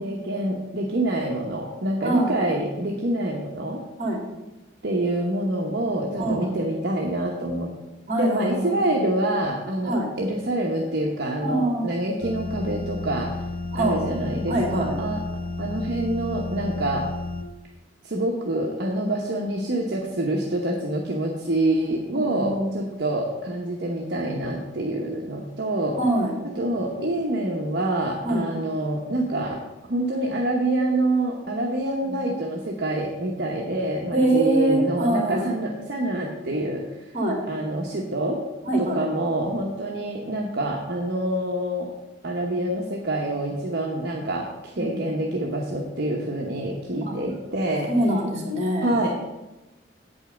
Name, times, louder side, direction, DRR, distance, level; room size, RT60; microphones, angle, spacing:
voice 1, 0.0-3.8 4.8-7.7 8.2-13.3 13.7-15.2 15.6-17.1 18.0-26.0 26.6-29.6 29.9-37.1 37.5-38.4 38.8-41.9 42.2-47.9 48.8-49.1, right 1 dB, 60° right, -1 dB, 1.0 m, -26 dB
voice 2, 2.0-2.4 4.0-4.2 6.2-6.5 8.1-8.8 9.8-10.1 11.4-11.9 13.7-14.0 14.5-14.9 22.1-22.7 26.0-26.3 28.2-28.5 32.1-32.2 34.1-35.5 37.1-37.4 38.7-39.1 44.8-45.0 47.0-47.1 47.9-49.0, right 1 dB, 40° right, 0 dB, 2.6 m, -24 dB
sound 1, 12.2-17.4, left 3 dB, 50° left, 1.0 m, -32 dB
8.0 x 5.5 x 6.9 m, 1.0 s
head